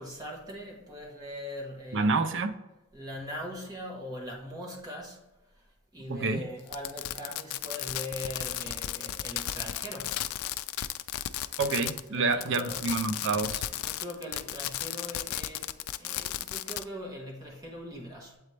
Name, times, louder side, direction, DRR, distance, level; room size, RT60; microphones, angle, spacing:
voice 1, 0.0-2.3 2.9-5.2 5.9-10.3 12.1-12.9 13.6-15.7 16.0-18.4, left 1 dB, 20° right, -2 dB, 1.3 m, -41 dB
voice 2, 1.9-2.5 6.1-6.4 11.6-13.6, right 3 dB, 60° right, 9 dB, 0.5 m, -28 dB
Fireworks, 6.7-12.1 12.3-16.8, left 13 dB, 80° left, 0.3 m, -34 dB
7.8 x 4.1 x 3.3 m, 1.0 s
head